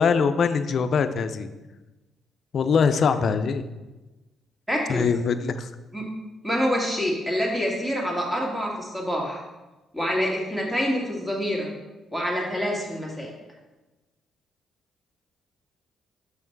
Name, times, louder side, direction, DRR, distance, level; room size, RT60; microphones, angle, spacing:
voice 1, 0.0-1.5 2.5-3.6 4.9-5.7, left 5 dB, 55° left, 10 dB, 0.5 m, -22 dB
voice 2, 4.7-5.1 5.9-6.1 6.4-9.4 9.9-11.7 12.1-13.3, equal, 10° right, -2 dB, 2.0 m, -26 dB
6.2 x 5.6 x 4.6 m, 1.1 s
cardioid pair, 90°, 0 cm